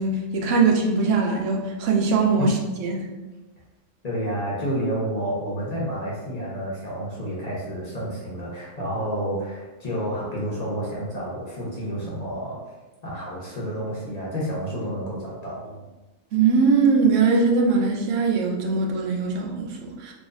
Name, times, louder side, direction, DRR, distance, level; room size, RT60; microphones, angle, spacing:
voice 1, 0.0-3.1 16.3-20.1, right 4 dB, 85° right, 1 dB, 1.0 m, -21 dB
voice 2, 4.0-12.6 13.0-15.9, equal, 35° left, -6 dB, 0.9 m, -30 dB
3.6 x 2.6 x 2.6 m, 1.2 s
omnidirectional pair, 1.2 m